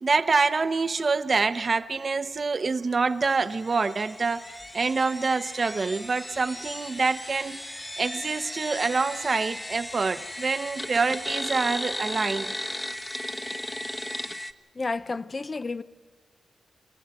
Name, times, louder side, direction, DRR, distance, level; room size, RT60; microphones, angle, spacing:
voice 1, 0.0-12.6, right 4 dB, 45° right, 0.9 m, -26 dB
sound 1, 3.3-14.5, left 1 dB, 15° left, 1.0 m, -36 dB
voice 2, 14.7-15.8, left 3 dB, 40° left, 0.6 m, -31 dB
27.0 x 16.0 x 6.0 m
cardioid pair, 55°, 0 cm